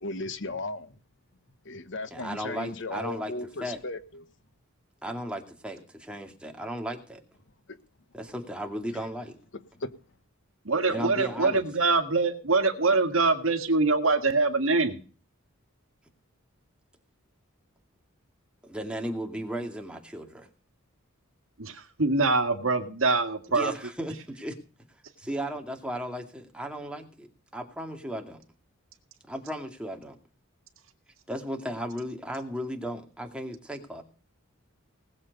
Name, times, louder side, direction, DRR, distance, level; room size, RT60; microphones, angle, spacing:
voice 1, 0.0-0.9 1.6-4.2 9.8-9.9, left 2 dB, 60° left, 1.1 m, -36 dB
voice 2, 2.1-3.8 5.0-7.2 8.1-9.4 10.9-11.6 18.6-20.5 23.5-24.6 25.2-28.4 29.3-30.2 31.3-34.0, equal, 5° right, 2.3 m, -35 dB
voice 3, 10.7-15.0 21.6-23.7, right 3 dB, 65° right, 1.9 m, -24 dB
19.5 x 7.6 x 5.3 m
head